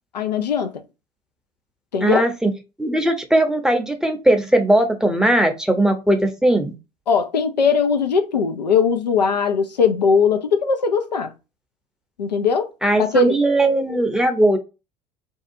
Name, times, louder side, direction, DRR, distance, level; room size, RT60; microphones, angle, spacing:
voice 1, 0.1-0.7 1.9-2.3 7.1-11.3 12.2-12.7 13.0-13.4, left 5 dB, 85° left, 0.5 m, -19 dB
voice 2, 2.0-2.5 2.8-6.7 12.8-14.6, right 1 dB, 5° right, 0.6 m, -18 dB
2.7 x 2.2 x 2.6 m
figure-of-eight pair, 70°, 21 cm